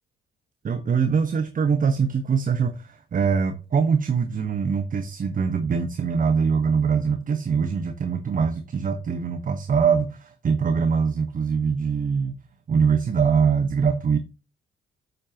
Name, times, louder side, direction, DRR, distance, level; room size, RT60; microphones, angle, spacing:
voice 1, 0.6-12.4 12.7-14.2, right 6 dB, 40° right, 1.3 m, -23 dB
11.0 x 8.0 x 2.9 m
cardioid pair, 90°, 20 cm